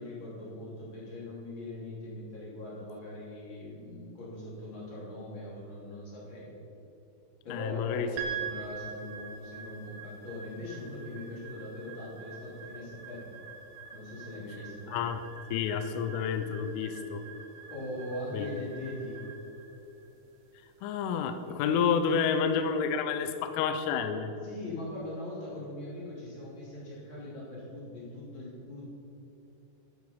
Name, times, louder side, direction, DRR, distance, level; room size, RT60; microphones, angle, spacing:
voice 1, 0.0-6.5 7.4-13.3 13.9-14.9 17.7-19.2 24.4-28.9, left 1 dB, 30° left, -6 dB, 2.6 m, -41 dB
voice 2, 7.5-8.1 14.9-15.2 15.5-17.2 18.3-18.5 20.8-24.3, left 6 dB, 80° left, 9 dB, 3.1 m, -29 dB
sound 1, 8.2-22.5, right 6 dB, 70° right, 2.9 m, -45 dB
13.0 x 7.9 x 5.6 m, 2.9 s
omnidirectional pair, 5.9 m